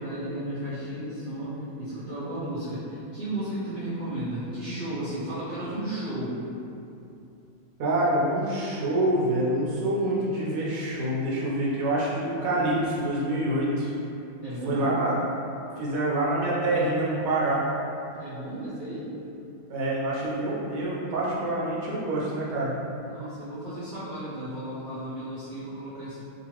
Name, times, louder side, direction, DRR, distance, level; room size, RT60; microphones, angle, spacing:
voice 1, 0.0-6.4 14.4-14.9 18.1-19.1 22.9-26.2, right 1 dB, 55° right, -12 dB, 0.5 m, -34 dB
voice 2, 7.8-13.9 14.6-15.1 15.8-17.6 19.7-22.7, right 1 dB, 75° right, -6 dB, 1.1 m, -26 dB
2.8 x 2.4 x 3.0 m, 2.7 s
omnidirectional pair, 1.5 m